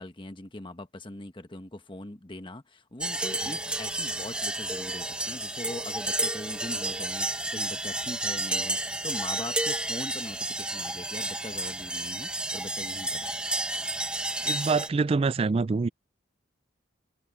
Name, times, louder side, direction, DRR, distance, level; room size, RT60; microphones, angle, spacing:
voice 1, 0.0-13.3, left 1 dB, 25° left, 1.2 m, -41 dB
sound 1, 3.0-14.9, right 1 dB, 5° right, 0.8 m, -31 dB
voice 2, 14.5-15.9, right 4 dB, 30° right, 0.3 m, -25 dB
head